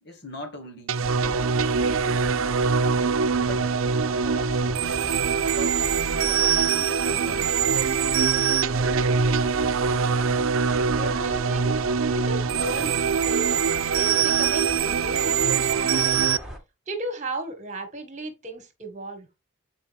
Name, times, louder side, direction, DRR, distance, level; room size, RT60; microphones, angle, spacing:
voice 1, 0.0-2.4 3.5-3.7 4.2-4.9 5.4-8.0, left 1 dB, 50° left, 1.9 m, -42 dB
sound 1, 0.9-16.4, right 6 dB, 80° right, 0.6 m, -23 dB
sound 2, 1.0-16.6, equal, ahead, 1.9 m, -38 dB
voice 2, 10.7-11.8 12.1-13.6 14.0-16.3 16.9-19.3, right 2 dB, 35° right, 1.9 m, -35 dB
9.0 x 5.0 x 3.5 m
head